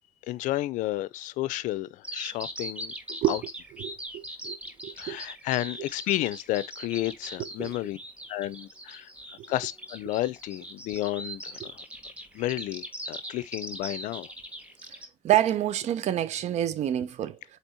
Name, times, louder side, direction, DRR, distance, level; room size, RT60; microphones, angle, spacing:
voice 1, 0.3-2.9 3.3-3.4 5.0-8.0 8.3-9.1 9.5-11.7 12.3-14.3, left 16 dB, 85° left, 0.6 m, -31 dB
Bird vocalization bird call bird song, 2.0-15.1, right 1 dB, 10° right, 1.6 m, -40 dB
voice 2, 3.1-3.4 3.8-4.6 4.8-5.2 7.4-7.7 9.4-9.5 11.6-11.7 15.2-17.6, right 12 dB, 65° right, 0.9 m, -28 dB
8.4 x 3.4 x 4.3 m
cardioid pair, 120°, 13 cm